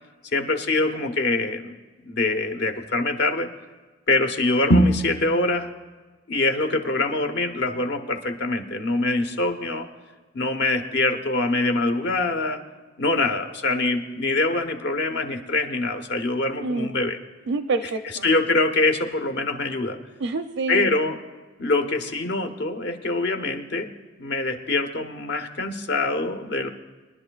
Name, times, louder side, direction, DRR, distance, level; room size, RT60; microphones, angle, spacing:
voice 1, 0.3-1.7 2.0-3.5 4.1-5.7 6.3-9.9 10.3-12.6 13.0-17.2 18.2-20.0 20.7-21.2 21.6-26.7, left 2 dB, 60° left, 6 dB, 1.1 m, -24 dB
voice 2, 16.6-17.0 17.5-18.3 20.2-20.9, right 3 dB, 80° right, 7 dB, 0.5 m, -27 dB
23.0 x 11.0 x 2.4 m, 1.3 s
head